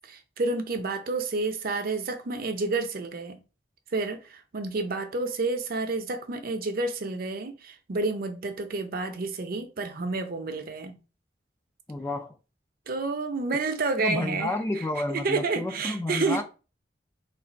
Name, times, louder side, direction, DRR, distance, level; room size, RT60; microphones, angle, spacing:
voice 1, 0.1-3.4 3.9-10.9 12.9-14.5 15.1-16.4, right 3 dB, 55° right, 0.6 m, -30 dB
voice 2, 11.9-12.4 14.0-16.4, left 2 dB, 15° left, 0.3 m, -30 dB
3.3 x 2.4 x 3.9 m
head